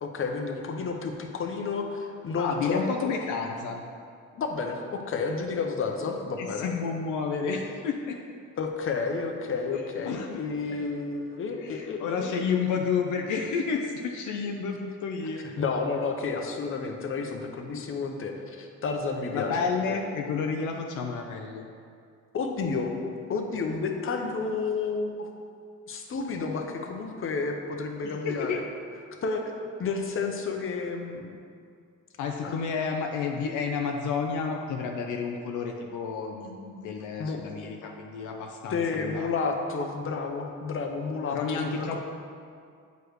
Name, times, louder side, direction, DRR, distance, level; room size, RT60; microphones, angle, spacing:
voice 1, 0.0-2.8 4.4-6.7 8.6-12.3 15.6-19.6 19.9-20.0 22.3-22.9 23.3-25.3 25.9-28.6 29.2-29.5 29.8-31.4 32.4-32.6 37.2-37.5 38.7-42.0, left 4 dB, 45° left, 3 dB, 0.8 m, -31 dB
voice 2, 2.3-3.8 6.4-8.2 9.7-10.4 11.6-15.4 17.7-17.8 19.3-21.7 28.0-28.6 32.2-39.3 41.3-42.0, left 5 dB, 80° left, 2 dB, 0.6 m, -31 dB
7.9 x 4.9 x 3.1 m, 2.3 s
cardioid pair, 90°, 30 cm